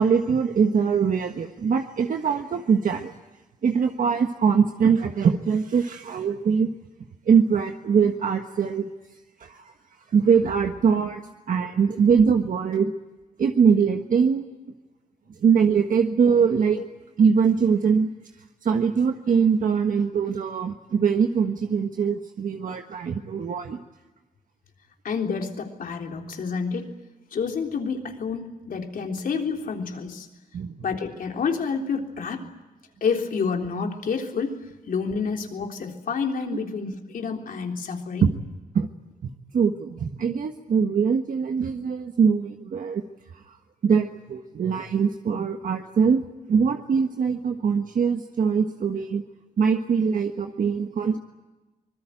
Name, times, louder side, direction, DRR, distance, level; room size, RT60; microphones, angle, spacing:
voice 1, 0.0-3.2 3.6-6.7 7.3-8.9 9.4-9.7 10.1-11.2 11.5-12.9 13.4-14.6 15.4-16.8 17.2-18.1 18.6-23.8 30.5-30.7 36.5-36.6 38.2-38.3 38.7-38.9 39.2-43.0 43.5-43.6 43.8-46.2 46.5-49.2 49.6-51.2, right 6 dB, 75° right, 5 dB, 1.5 m, -22 dB
voice 2, 25.0-26.9 27.3-30.3 30.8-32.4 33.0-34.6 34.9-38.3, left 5 dB, 80° left, 3 dB, 3.5 m, -29 dB
24.5 x 21.5 x 9.1 m, 1.1 s
wide cardioid pair, 120°, 14 cm